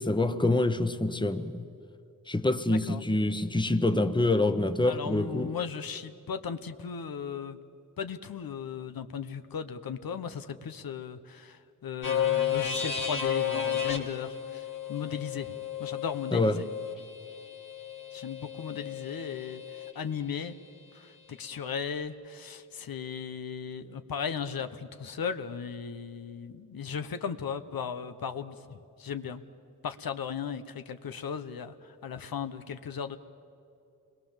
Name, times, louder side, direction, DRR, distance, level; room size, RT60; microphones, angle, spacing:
voice 1, 0.0-1.6 2.3-5.5 16.3-16.6, left 2 dB, 15° left, 1.0 m, -26 dB
voice 2, 2.7-3.0 4.8-7.6 8.0-16.6 18.1-20.6 20.9-29.4 29.8-33.2, left 7 dB, 85° left, 1.0 m, -36 dB
sound 1, 12.0-19.9, left 9 dB, 65° left, 2.9 m, -33 dB
28.0 x 21.5 x 7.3 m
wide cardioid pair, 85°, 34 cm